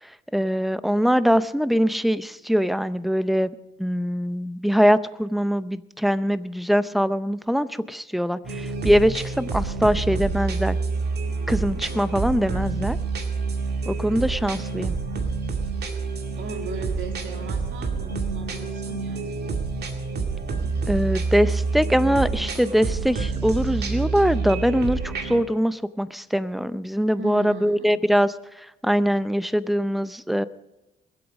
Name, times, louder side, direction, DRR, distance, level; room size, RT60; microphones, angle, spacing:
voice 1, 0.0-3.5 3.8-10.8 11.5-13.0 13.9-15.0 20.9-30.4, equal, ahead, 14 dB, 0.6 m, -22 dB
sound 1, 8.4-25.4, right 4 dB, 55° right, 2.0 m, -28 dB
voice 2, 16.3-19.4 27.2-28.0, right 2 dB, 75° right, 2 dB, 2.8 m, -37 dB
22.5 x 8.1 x 5.3 m, 0.97 s
cardioid pair, 90°, 20 cm